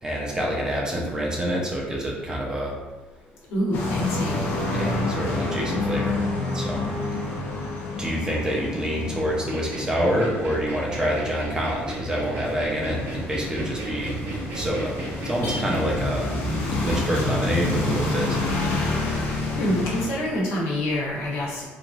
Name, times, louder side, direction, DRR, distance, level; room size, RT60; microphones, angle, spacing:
voice 1, 0.0-2.8 4.7-6.2 6.5-6.8 8.0-14.2 14.5-15.0 15.2-16.3 16.8-18.4, equal, 20° right, -3 dB, 0.6 m, -27 dB
voice 2, 3.5-4.3 19.5-21.6, left 1 dB, 85° left, -5 dB, 1.0 m, -26 dB
sound 1, 3.7-20.1, left 2 dB, 55° left, 0.6 m, -28 dB
sound 2, 9.5-15.8, right 1 dB, 70° right, 0.8 m, -36 dB
3.1 x 2.5 x 2.4 m, 1.3 s
cardioid pair, 125°, 4 cm